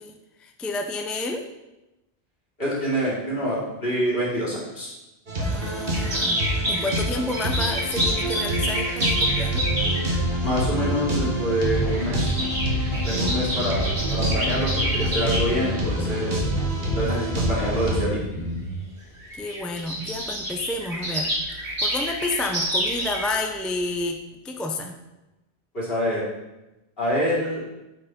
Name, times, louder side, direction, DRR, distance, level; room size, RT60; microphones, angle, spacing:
voice 1, 0.0-1.5 5.4-9.6 17.1-17.2 19.3-21.3 21.8-24.9, left 2 dB, ahead, 3 dB, 0.4 m, -30 dB
voice 2, 2.6-4.9 10.4-12.4 13.0-16.4 16.9-18.2 25.7-26.2 27.0-27.6, equal, 60° left, -6 dB, 2.9 m, -26 dB
sound 1, 5.3-18.0, equal, 65° right, 1.8 m, -28 dB
sound 2, 5.9-10.2 11.2-11.4 11.7-15.4 16.1-16.4 17.0-17.1 17.4-17.6 18.5-18.6 18.9-19.0 19.1-23.6 23.9-24.0, equal, 90° right, 3.6 m, -28 dB
sound 3, 9.2-18.8, right 2 dB, 25° left, 1.7 m, -29 dB
8.4 x 4.6 x 5.1 m, 1.0 s
omnidirectional pair, 1.1 m